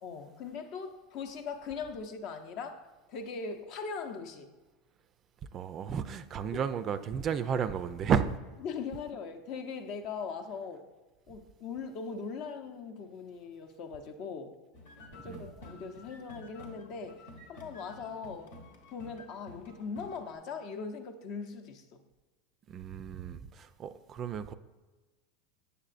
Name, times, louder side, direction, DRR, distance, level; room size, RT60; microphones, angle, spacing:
voice 1, 0.0-4.5 6.5-6.6 8.6-10.9 11.3-14.6 15.2-18.5 18.9-22.0, left 5 dB, 55° left, 0.6 m, -40 dB
voice 2, 5.5-8.4 15.3-15.5 22.7-24.5, right 7 dB, 40° right, 0.3 m, -32 dB
sound 1, 14.7-20.4, left 1 dB, 85° left, 1.1 m, -51 dB
6.7 x 6.6 x 2.5 m
hypercardioid pair, 100°, 0 cm